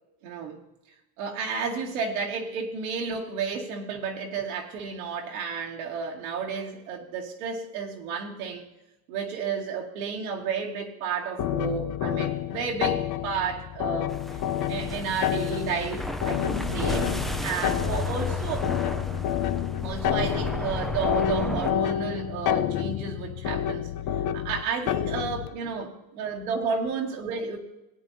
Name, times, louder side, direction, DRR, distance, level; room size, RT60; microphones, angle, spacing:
voice 1, 0.2-0.6 1.2-8.6 9.1-14.1 14.7-17.1 17.4-18.7 19.8-23.9 24.3-27.6, right 5 dB, 85° right, -2 dB, 2.4 m, -32 dB
sound 1, 11.4-25.5, left 11 dB, 45° left, 0.6 m, -29 dB
sound 2, 14.1-21.7, left 1 dB, ahead, 0.5 m, -33 dB
19.0 x 9.1 x 2.7 m, 0.93 s
supercardioid pair, 110°, 42 cm